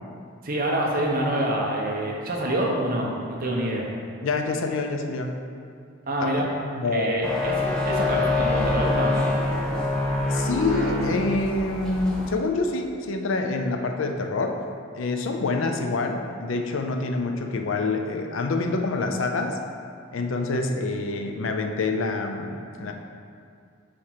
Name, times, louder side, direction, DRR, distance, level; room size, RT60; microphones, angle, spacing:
voice 1, 0.4-3.9 6.1-6.5 6.9-7.5 7.8-9.3, right 1 dB, 45° right, -1 dB, 0.9 m, -26 dB
voice 2, 4.2-5.3 6.2-6.3 6.8-7.1 10.3-14.6 14.9-19.6 20.1-22.9, left 3 dB, 65° left, 4 dB, 0.5 m, -26 dB
sound 1, 7.2-12.3, left 2 dB, 5° left, 0.8 m, -25 dB
4.9 x 4.3 x 5.7 m, 2.3 s
head